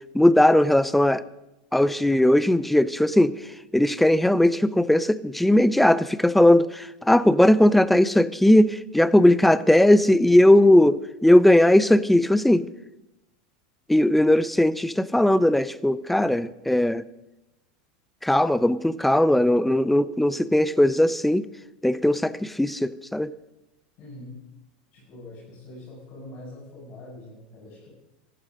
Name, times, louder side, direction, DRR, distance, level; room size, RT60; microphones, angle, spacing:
voice 1, 0.1-1.2 1.7-3.4 3.7-12.6 13.9-17.0 18.2-21.5 21.8-23.3, left 1 dB, 5° left, 0.6 m, -18 dB
voice 2, 24.0-24.4 24.9-27.9, left 1 dB, 40° left, 7.7 m, -43 dB
15.0 x 12.0 x 6.5 m
supercardioid pair, 125°, 4 cm